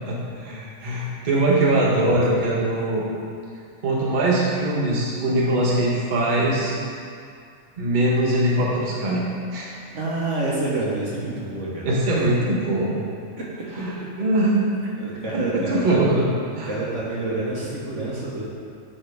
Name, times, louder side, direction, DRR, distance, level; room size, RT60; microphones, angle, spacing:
voice 1, 0.0-3.0 3.8-6.8 7.8-9.2 9.5-9.7 11.8-13.0 13.8-14.6 15.3-16.2 16.5-16.7, right 1 dB, 35° right, -6 dB, 1.2 m, -22 dB
voice 2, 9.9-12.3 13.7-13.8 15.0-16.0 16.6-18.4, right 2 dB, 60° right, -5 dB, 1.4 m, -28 dB
10.5 x 4.4 x 3.5 m, 2.3 s
omnidirectional pair, 1.5 m